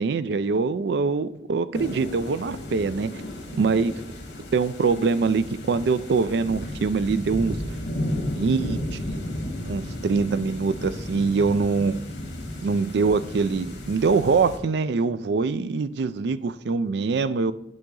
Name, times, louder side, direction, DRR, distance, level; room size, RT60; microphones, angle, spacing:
voice 1, 0.0-3.1 3.5-3.9 4.5-7.6 8.3-9.2 9.6-12.0 12.6-17.5, right 4 dB, 60° right, 14 dB, 0.4 m, -24 dB
sound 1, 1.7-14.6, left 1 dB, 65° left, 1.9 m, -34 dB
10.5 x 4.0 x 3.8 m, 0.84 s
head